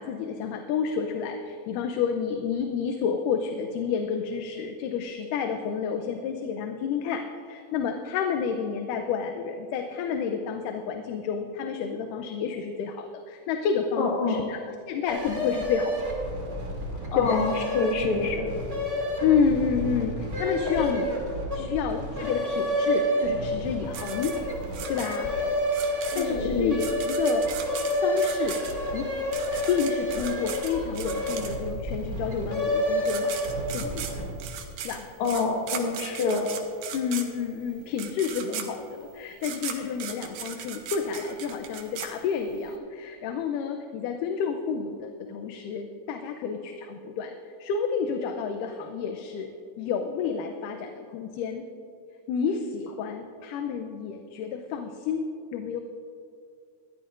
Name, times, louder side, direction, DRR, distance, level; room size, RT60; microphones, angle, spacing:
voice 1, 0.0-15.9 17.1-17.4 19.2-21.1 21.5-24.4 24.9-25.3 26.2-27.5 28.0-28.6 28.9-29.2 29.7-33.4 33.7-34.2 34.8-35.1 36.9-47.3 47.6-49.5 49.8-51.7 52.3-55.8, left 6 dB, 90° left, 5 dB, 2.3 m, -30 dB
voice 2, 14.0-14.4 17.1-18.5 20.6-21.1 21.6-21.7 26.1-26.7 35.2-36.5, left 4 dB, 50° left, 0 dB, 2.3 m, -27 dB
sound 1, 15.0-34.5, equal, 25° right, 2.2 m, -29 dB
sound 2, 23.9-31.9 32.7-32.8 33.0-42.7, right 8 dB, 85° right, 2.5 m, -38 dB
20.5 x 14.0 x 2.5 m, 2.5 s
omnidirectional pair, 3.6 m